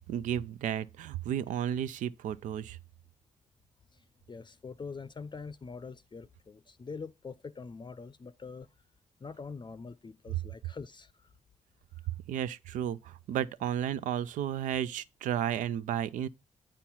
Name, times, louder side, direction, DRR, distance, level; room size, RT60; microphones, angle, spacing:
voice 1, 0.1-2.8 12.1-16.3, right 10 dB, 85° right, 0.4 m, -33 dB
voice 2, 3.9-8.7 9.2-11.3, left 4 dB, 35° left, 0.5 m, -44 dB
8.9 x 4.5 x 5.6 m
supercardioid pair, 50°, 13 cm